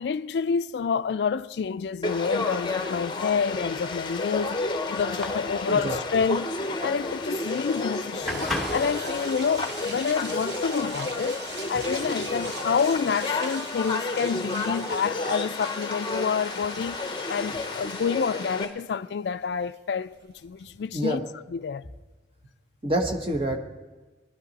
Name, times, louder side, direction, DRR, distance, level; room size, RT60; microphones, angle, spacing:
voice 1, 0.0-4.6 4.9-6.5 6.8-11.4 11.7-17.0 17.3-21.9, left 6 dB, 75° left, 0.3 m, -28 dB
Conversation / Crowd, 2.0-18.6, left 3 dB, 25° left, 0.7 m, -31 dB
sound 1, 3.2-13.0, left 1 dB, ahead, 1.0 m, -38 dB
sound 2, 7.3-20.8, right 3 dB, 75° right, 1.2 m, -42 dB
voice 2, 22.8-23.6, right 1 dB, 30° right, 1.0 m, -27 dB
20.5 x 11.5 x 4.1 m
head